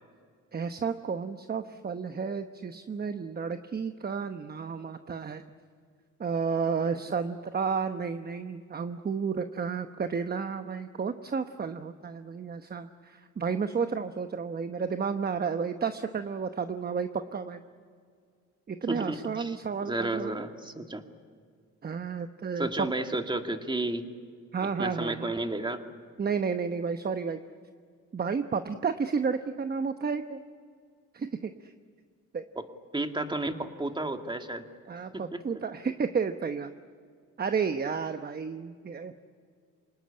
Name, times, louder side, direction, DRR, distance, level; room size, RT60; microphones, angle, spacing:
voice 1, 0.5-5.4 6.2-17.6 18.7-20.3 21.8-22.9 24.5-25.3 26.2-27.4 28.1-30.4 31.1-31.7 32.3-32.4 34.9-36.7 37.4-39.2, right 5 dB, 30° right, 9 dB, 1.0 m, -32 dB
voice 2, 18.9-19.6 19.8-21.0 22.6-24.0 24.6-25.8 32.6-32.7 32.9-34.6 35.1-35.4, right 2 dB, 15° right, 5 dB, 2.2 m, -32 dB
26.5 x 19.0 x 9.9 m, 2.1 s
cardioid pair, 90°, 30 cm